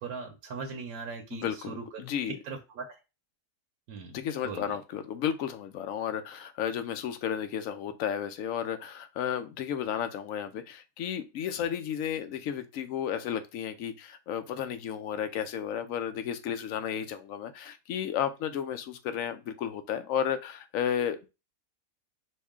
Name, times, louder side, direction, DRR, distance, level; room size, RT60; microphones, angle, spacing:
voice 1, 0.0-3.0 3.9-4.2 4.4-4.8, right 4 dB, 70° right, 3 dB, 1.1 m, -40 dB
voice 2, 1.3-2.4 4.1-21.3, left 9 dB, 65° left, 9 dB, 0.9 m, -33 dB
5.3 x 2.2 x 3.6 m, 0.28 s
omnidirectional pair, 1.7 m